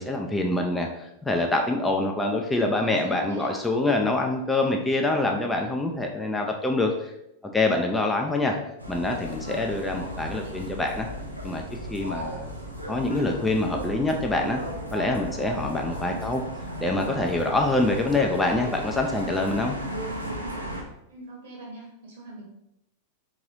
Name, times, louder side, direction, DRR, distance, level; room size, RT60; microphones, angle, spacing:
voice 1, 0.0-7.1 7.5-8.5 8.9-11.1 11.4-11.6 11.9-12.5 12.9-14.6 14.9-16.4 16.8-19.8, left 2 dB, 10° left, 2 dB, 0.4 m, -25 dB
voice 2, 2.5-3.6 8.4-8.7 10.1-10.7 16.0-16.4 21.1-22.5, right 2 dB, 60° right, -1 dB, 1.2 m, -43 dB
sound 1, 8.8-20.8, equal, 90° right, 0.6 m, -35 dB
3.7 x 3.0 x 2.6 m, 0.83 s
figure-of-eight pair, 90°, 0 cm